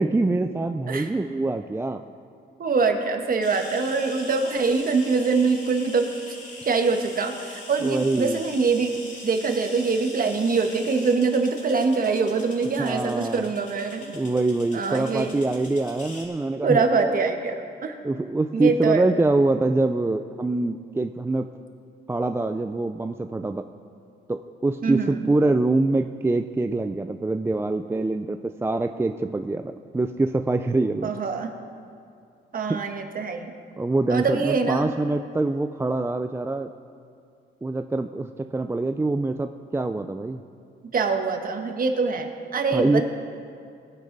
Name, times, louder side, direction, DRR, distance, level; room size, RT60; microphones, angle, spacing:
voice 1, 0.0-2.0 7.8-8.4 12.8-13.4 14.1-17.2 18.0-21.5 22.1-23.7 24.3-31.1 32.7-32.8 33.8-36.7 37.6-40.4 42.7-43.0, right 2 dB, 10° right, 8 dB, 0.4 m, -24 dB
voice 2, 2.6-6.1 6.6-14.1 14.7-15.4 16.6-18.0 18.5-19.0 24.8-25.2 31.0-31.5 32.5-33.5 34.1-34.9 40.9-43.0, right 4 dB, 45° right, 5 dB, 1.4 m, -24 dB
sound 1, 3.4-16.2, left 2 dB, 40° left, 3.5 m, -43 dB
19.0 x 9.9 x 4.0 m, 2.4 s
cardioid pair, 90°, 20 cm